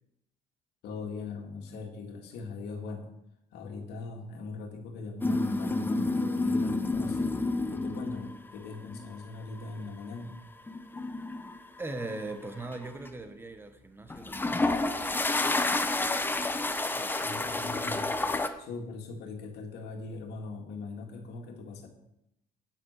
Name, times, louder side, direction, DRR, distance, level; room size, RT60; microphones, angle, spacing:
voice 1, 0.8-3.1 3.5-7.4 7.7-10.4 17.2-18.1 18.6-21.9, left 3 dB, 80° left, 2.2 m, -40 dB
sound 1, 5.2-8.4 8.8-9.1 10.7-12.3 12.7-13.1 14.1-18.5, left 2 dB, 10° left, 0.9 m, -29 dB
voice 2, 11.8-15.7 16.9-17.5, right 2 dB, 15° right, 1.4 m, -41 dB
9.2 x 8.1 x 6.6 m
cardioid pair, 110°, 17 cm